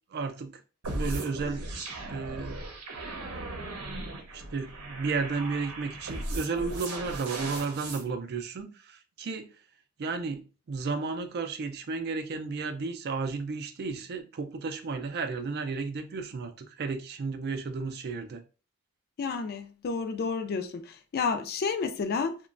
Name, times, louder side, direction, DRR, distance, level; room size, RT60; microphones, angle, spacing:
voice 1, 0.1-0.6 0.9-1.7 2.1-2.6 4.2-9.5 10.0-18.4, right 4 dB, 45° right, 0.4 m, -33 dB
sound 1, 0.8-8.0, right 2 dB, 80° right, 0.7 m, -37 dB
voice 2, 19.2-22.4, left 5 dB, 45° left, 0.3 m, -30 dB
2.9 x 2.2 x 2.4 m
head